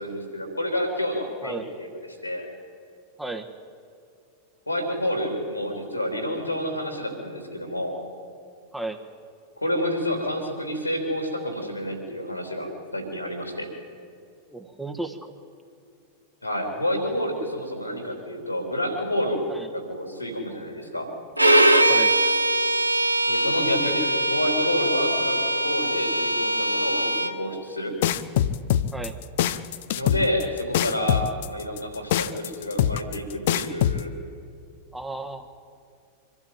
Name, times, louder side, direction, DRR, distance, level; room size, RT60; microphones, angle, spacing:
voice 1, 0.0-1.9 2.2-2.5 4.7-8.0 9.6-13.7 16.4-19.5 19.7-21.1 23.3-28.0 29.9-34.1, left 1 dB, 85° left, 5 dB, 3.5 m, -29 dB
voice 2, 1.4-1.9 3.2-3.5 8.7-9.0 14.5-15.3 19.5-19.7 21.9-22.1 28.9-29.1 34.9-35.5, right 2 dB, 5° right, 5 dB, 1.3 m, -34 dB
Bowed string instrument, 21.4-27.4, right 1 dB, 85° right, 0.9 m, -22 dB
sound 1, 28.0-34.0, left 11 dB, 55° left, 0.7 m, -23 dB
24.5 x 12.5 x 9.1 m, 2.4 s
figure-of-eight pair, 90°, 0 cm